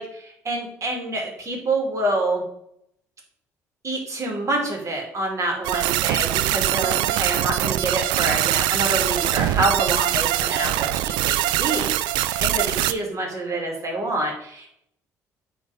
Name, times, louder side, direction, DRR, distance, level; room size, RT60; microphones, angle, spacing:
voice 1, 0.0-2.4 3.8-14.8, right 2 dB, 40° right, 0 dB, 2.7 m, -27 dB
sound 1, 5.6-12.9, right 14 dB, 70° right, 0.3 m, -23 dB
9.6 x 3.6 x 3.5 m, 0.73 s
hypercardioid pair, 55°, 8 cm